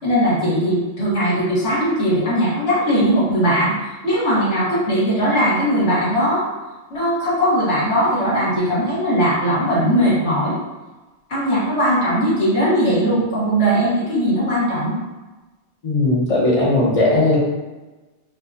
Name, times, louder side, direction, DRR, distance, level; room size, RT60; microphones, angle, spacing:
voice 1, 0.0-3.8 4.0-6.4 6.9-10.6 11.3-15.0, equal, 70° left, -8 dB, 1.6 m, -19 dB
voice 2, 15.8-17.4, left 2 dB, 30° left, -6 dB, 0.8 m, -17 dB
4.3 x 2.3 x 2.6 m, 1.2 s
omnidirectional pair, 1.2 m